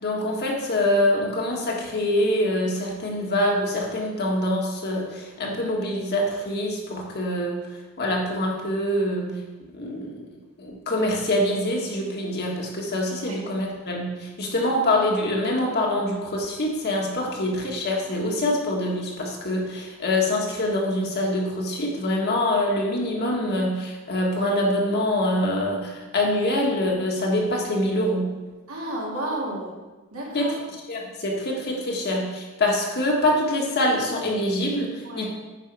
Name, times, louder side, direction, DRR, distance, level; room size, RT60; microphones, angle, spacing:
voice 1, 0.0-7.6 8.0-9.3 9.8-10.2 10.6-14.1 14.4-28.3 30.3-30.5 30.9-34.9 35.2-35.3, left 1 dB, 45° left, -1 dB, 1.6 m, -25 dB
voice 2, 28.7-29.8 30.1-30.5 35.0-35.3, right 1 dB, 70° right, -3 dB, 2.2 m, -32 dB
9.1 x 5.5 x 4.7 m, 1.2 s
head